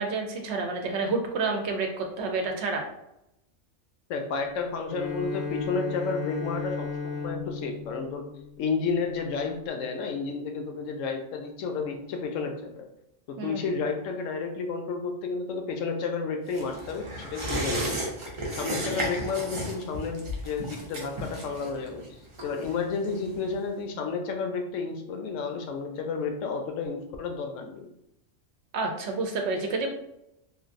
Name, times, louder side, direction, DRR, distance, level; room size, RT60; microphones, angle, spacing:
voice 1, 0.0-2.9 13.4-13.6 28.7-30.0, right 3 dB, 65° right, 3 dB, 0.8 m, -29 dB
voice 2, 4.1-8.3 8.6-12.9 13.3-17.9 18.5-27.9, left 4 dB, 80° left, 4 dB, 0.9 m, -31 dB
Bowed string instrument, 4.8-9.2, left 5 dB, 40° left, 0.5 m, -35 dB
sound 1, 16.5-23.6 23.9-24.0, right 1 dB, 45° right, 0.4 m, -34 dB
3.1 x 2.4 x 2.5 m, 0.84 s
omnidirectional pair, 1.3 m